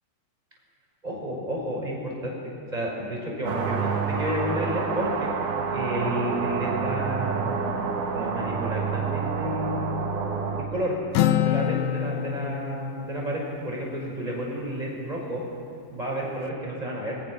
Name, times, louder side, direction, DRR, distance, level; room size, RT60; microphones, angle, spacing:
voice 1, 1.0-5.3 5.7-7.8 8.1-10.1 10.5-11.0 11.4-15.4 15.9-17.2, equal, 10° right, -2 dB, 5.4 m, -31 dB
sound 1, 3.5-10.6, right 5 dB, 70° right, 3.7 m, -28 dB
Acoustic guitar, 11.1-14.8, left 11 dB, 80° left, 2.2 m, -27 dB
27.0 x 22.0 x 6.3 m, 2.4 s
omnidirectional pair, 4.6 m